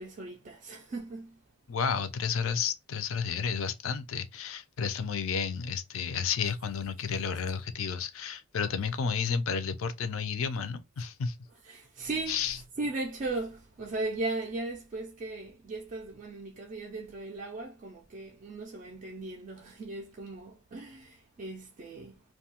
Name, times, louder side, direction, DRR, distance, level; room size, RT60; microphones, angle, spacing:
voice 1, 0.0-1.4 11.6-22.2, right 2 dB, 35° right, 0.3 m, -37 dB
voice 2, 1.7-11.3 12.3-12.6, left 6 dB, 65° left, 0.4 m, -31 dB
2.6 x 2.2 x 2.8 m
head